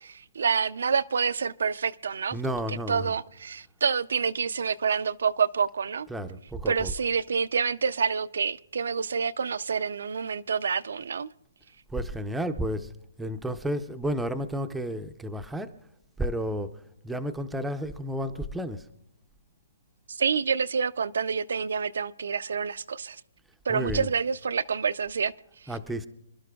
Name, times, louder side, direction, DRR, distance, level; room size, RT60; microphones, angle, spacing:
voice 1, 0.0-2.4 2.7-6.1 6.7-11.3 20.1-23.2 23.7-25.3, right 6 dB, 75° right, 0.4 m, -27 dB
voice 2, 2.3-3.1 6.1-6.9 11.9-12.9 13.2-15.7 16.2-18.9 23.7-24.1 25.7-26.1, equal, 5° right, 0.5 m, -32 dB
27.5 x 12.0 x 2.3 m
hypercardioid pair, 170°, 0 cm